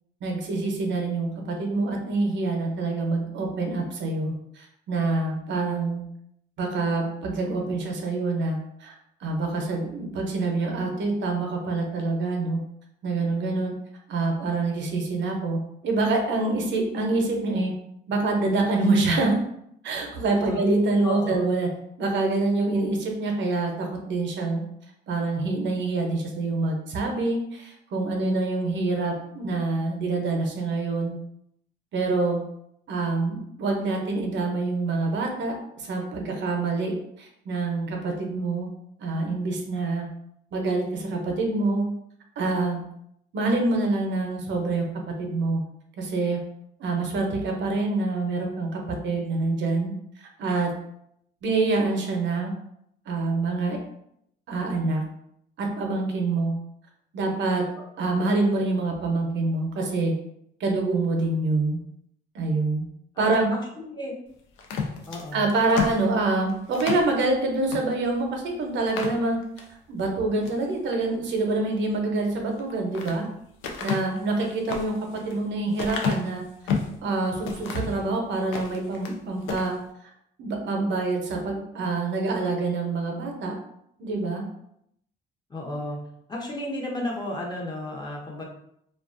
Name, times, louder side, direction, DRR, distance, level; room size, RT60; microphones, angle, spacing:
voice 1, 0.2-6.0 6.6-8.9 9.2-12.6 13.0-13.7 14.1-17.7 18.1-19.4 19.8-21.7 22.0-24.6 25.1-31.1 31.9-32.4 32.9-36.9 37.2-38.7 39.0-40.1 40.5-41.9 42.4-42.8 43.3-44.8 45.2-45.6 46.0-46.4 46.8-49.9 50.2-50.7 51.4-52.5 53.1-53.8 54.5-55.0 55.6-56.5 57.1-57.7 58.0-60.1 60.6-61.8 62.3-62.8 63.2-63.5 65.3-69.4 69.9-73.3 73.8-74.9 75.2-76.4 77.0-79.7 80.4-83.5 84.0-84.4, right 3 dB, 70° right, 2 dB, 0.6 m, -26 dB
voice 2, 21.0-21.4 63.1-63.4 63.8-64.1 65.1-65.5 85.5-86.0 86.3-88.4, left 1 dB, 20° left, -2 dB, 0.6 m, -33 dB
sound 1, 64.6-67.1 67.7-67.9 68.2-68.3 68.8-69.7 70.2-70.7 72.5-73.2 73.6-77.0 77.4-78.0 78.4-79.2 79.4-79.7, left 5 dB, 85° left, 0.4 m, -31 dB
2.4 x 2.2 x 2.4 m, 0.74 s
cardioid pair, 90°, 20 cm